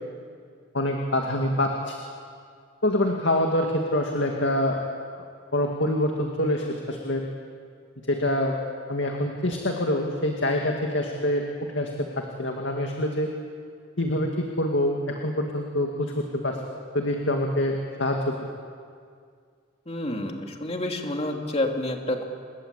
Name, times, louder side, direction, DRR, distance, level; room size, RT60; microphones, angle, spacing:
voice 1, 0.7-2.0 2.8-4.8 5.2-5.3 5.5-7.2 8.1-8.5 8.9-11.4 11.7-11.9 12.2-13.3 14.0-16.6 16.9-18.4, left 1 dB, 70° left, 2 dB, 2.3 m, -25 dB
voice 2, 19.9-22.3, left 1 dB, 35° left, 2 dB, 2.7 m, -29 dB
28.0 x 21.5 x 8.3 m, 2.1 s
head